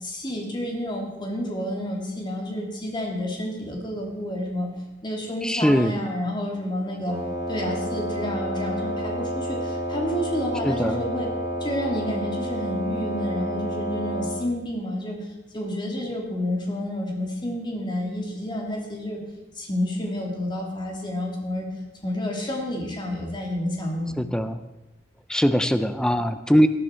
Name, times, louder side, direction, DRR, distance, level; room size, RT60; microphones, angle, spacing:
voice 1, 0.0-4.7 5.0-7.2 7.5-11.3 11.6-15.3 15.5-19.2 19.6-21.7 22.0-24.2, left 1 dB, 25° left, -1 dB, 2.7 m, -30 dB
voice 2, 5.4-6.0 10.6-11.0 24.2-24.6 25.3-26.7, equal, 5° left, 10 dB, 0.5 m, -21 dB
Wind instrument woodwind instrument, 7.1-14.5, equal, 20° right, 2.4 m, -30 dB
17.5 x 10.0 x 4.5 m, 1.1 s
head